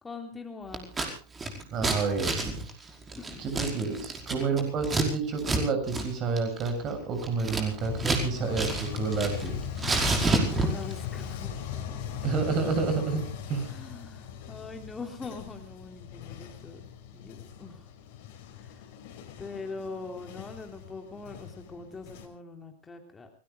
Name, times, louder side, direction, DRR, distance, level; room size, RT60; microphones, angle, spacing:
voice 1, 0.0-0.9 3.2-3.5 10.1-12.1 13.7-16.8 17.1-17.9 18.6-18.8 19.4-23.3, left 4 dB, 15° left, 4 dB, 3.3 m, -42 dB
Scissors, 0.7-1.1 1.4-5.1 5.4-5.6 5.9-6.1 6.4-8.3 8.5-9.5 9.8-10.9, right 3 dB, 15° right, 5.2 m, -29 dB
voice 2, 1.7-2.4 3.4-9.6 12.2-13.7, right 5 dB, 35° right, 6 dB, 6.7 m, -29 dB
sound 1, 7.8-22.3, left 8 dB, 50° left, 4.8 m, -39 dB
29.5 x 20.0 x 2.2 m, 0.36 s
figure-of-eight pair, 90°, 0 cm